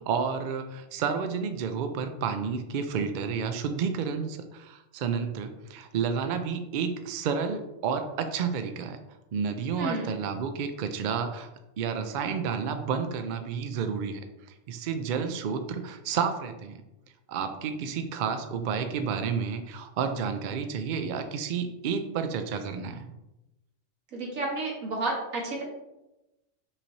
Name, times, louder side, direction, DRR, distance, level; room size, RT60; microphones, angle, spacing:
voice 1, 0.1-9.0 9.3-11.5 11.8-14.2 14.7-16.8 17.3-23.1, right 6 dB, 70° right, 7 dB, 0.4 m, -30 dB
voice 2, 9.8-10.2 24.1-25.6, right 2 dB, 90° right, -2 dB, 1.6 m, -31 dB
5.6 x 3.2 x 2.7 m, 0.95 s
omnidirectional pair, 1.3 m